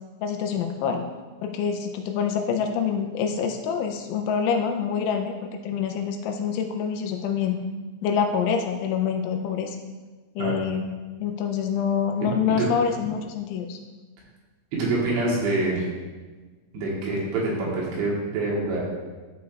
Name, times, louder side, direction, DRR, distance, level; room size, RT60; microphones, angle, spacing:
voice 1, 0.2-1.1 1.4-7.6 8.0-9.8 10.4-10.8 11.2-13.8, left 7 dB, 85° left, 4 dB, 2.9 m, -26 dB
voice 2, 14.7-15.8 16.7-18.8, right 2 dB, 70° right, -4 dB, 3.2 m, -25 dB
12.5 x 5.2 x 2.3 m, 1.3 s
omnidirectional pair, 5.7 m